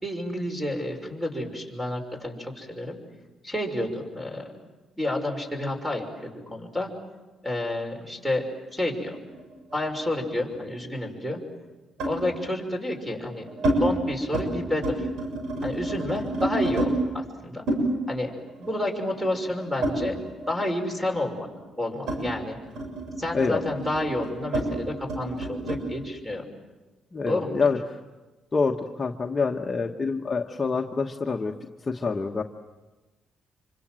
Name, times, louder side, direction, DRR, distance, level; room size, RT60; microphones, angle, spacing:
voice 1, 0.0-3.0 3.4-4.5 5.0-6.9 7.4-8.4 8.7-9.2 9.7-11.4 12.0-13.4 13.8-15.1 15.6-16.9 17.1-17.6 18.1-18.3 18.6-20.1 20.5-21.5 21.8-22.6 23.2-26.4 27.3-27.6, left 1 dB, 5° right, 4 dB, 5.9 m, -30 dB
sound 1, 9.1-10.7 12.0-12.2 13.0-13.8 14.1-14.5 14.7-16.9 17.7-20.5 20.8-25.8, right 1 dB, 80° right, 7.1 m, -30 dB
voice 2, 27.1-27.8 28.5-31.5 31.8-32.4, left 4 dB, 30° left, 2 dB, 1.3 m, -26 dB
26.5 x 25.0 x 7.7 m, 1.2 s
cardioid pair, 90°, 0 cm